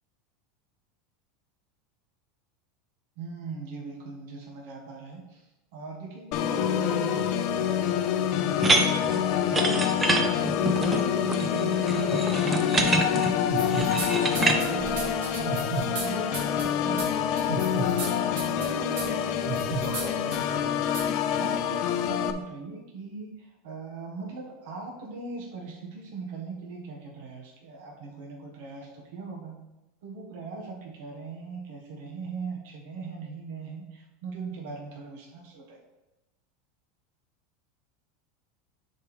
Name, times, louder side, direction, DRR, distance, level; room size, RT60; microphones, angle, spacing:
voice 1, 3.2-5.4 5.7-10.4 10.7-13.7 14.1-15.0 15.3-29.6 30.0-35.8, right 4 dB, 60° right, -1 dB, 1.4 m, -40 dB
Organ, 6.3-22.3, left 9 dB, 40° left, 0.5 m, -27 dB
sound 1, 8.6-14.6, right 2 dB, 10° right, 0.6 m, -26 dB
sound 2, 13.5-14.1 14.3-16.1 16.3-16.6 17.0-17.1 17.4-18.1 18.4-18.7 19.0-19.1 19.5-20.0 20.3-20.4 20.9-21.0, right 4 dB, 85° right, 2.3 m, -32 dB
10.5 x 4.6 x 3.3 m, 1.0 s
supercardioid pair, 170°, 0 cm